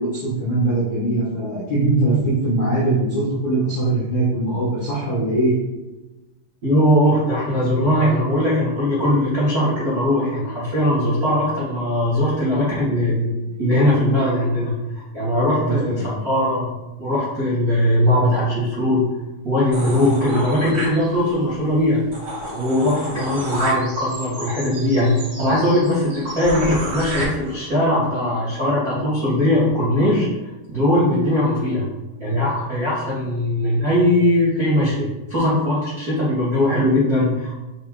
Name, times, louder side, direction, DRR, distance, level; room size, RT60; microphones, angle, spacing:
voice 1, 0.0-2.2 2.4-5.5 13.7-13.8 15.6-16.2, right 2 dB, 80° left, -7 dB, 1.6 m, -21 dB
voice 2, 6.6-16.7 17.0-19.1 19.4-22.0 22.5-31.8 32.2-37.6, left 1 dB, 75° right, -9 dB, 0.8 m, -20 dB
sound 1, 19.7-21.4 21.8-21.9 22.1-27.2, right 1 dB, 50° right, 1.0 m, -31 dB
8.4 x 3.1 x 3.8 m, 1.0 s
omnidirectional pair, 5.7 m